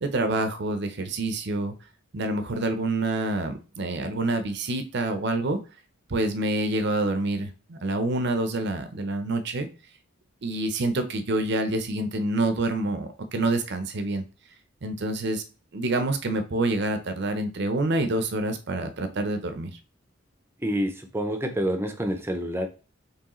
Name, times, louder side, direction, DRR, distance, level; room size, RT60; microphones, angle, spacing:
voice 1, 0.0-1.7 2.1-5.6 6.1-9.7 10.4-14.2 14.8-15.4 15.7-19.7, right 2 dB, 60° right, 8 dB, 0.7 m, -27 dB
voice 2, 20.6-22.7, equal, 10° right, 6 dB, 0.6 m, -27 dB
4.7 x 3.2 x 3.0 m, 0.34 s
head